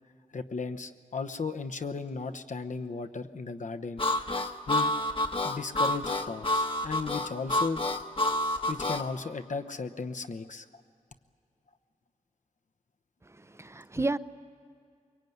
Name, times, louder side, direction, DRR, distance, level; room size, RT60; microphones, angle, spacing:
voice 1, 0.3-4.0 4.7-4.9 5.4-7.8 8.7-10.6 14.0-14.1, left 4 dB, 70° left, 8 dB, 1.0 m, -35 dB
Harmonica, 4.0-9.1, left 1 dB, 40° left, 1.1 m, -28 dB
voice 2, 13.2-14.2, right 2 dB, 20° right, 14 dB, 0.6 m, -32 dB
23.5 x 23.0 x 9.4 m, 2.3 s
wide cardioid pair, 100°, 13 cm